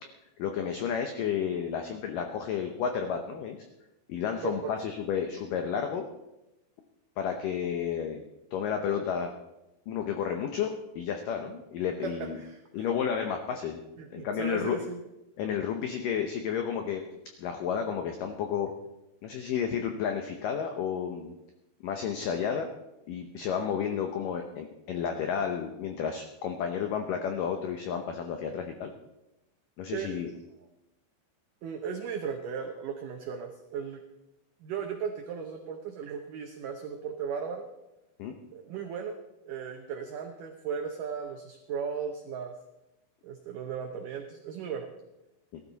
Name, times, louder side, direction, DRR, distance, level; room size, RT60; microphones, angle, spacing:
voice 1, 0.4-3.6 4.1-6.0 7.2-8.2 8.5-9.3 9.9-12.4 12.7-13.8 14.1-14.8 15.4-17.0 17.4-18.7 19.2-21.4 21.8-22.7 23.1-28.9 29.8-30.3 38.2-38.3 45.5-45.6, left 7 dB, 90° left, 5 dB, 1.9 m, -31 dB
voice 2, 12.0-12.9 14.0-15.0 29.9-30.2 31.6-34.0 34.6-37.7 38.5-39.2 39.4-42.6 43.2-44.9, right 6 dB, 85° right, 4 dB, 1.8 m, -36 dB
18.0 x 12.5 x 4.0 m, 0.95 s
omnidirectional pair, 5.1 m